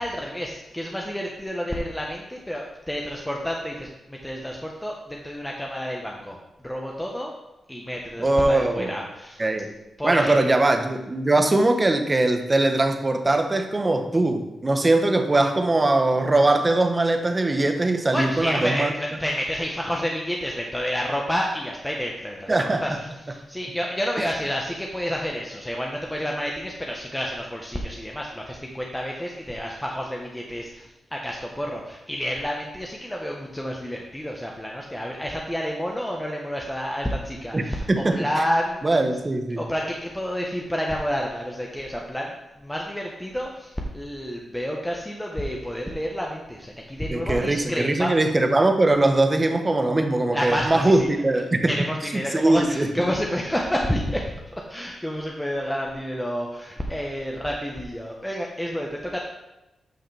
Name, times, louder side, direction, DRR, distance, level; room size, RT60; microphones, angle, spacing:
voice 1, 0.0-7.3 7.7-9.4 10.0-10.5 18.1-22.5 22.8-39.0 39.6-48.1 50.3-51.1 51.7-54.2 54.7-59.2, equal, 10° left, -1 dB, 1.0 m, -29 dB
voice 2, 8.2-9.0 9.4-9.7 10.0-18.9 22.5-22.8 37.5-38.2 38.8-39.6 47.1-51.7 52.3-52.9, right 2 dB, 30° right, 6 dB, 1.0 m, -21 dB
9.1 x 5.6 x 3.4 m, 0.93 s
cardioid pair, 60°, 0 cm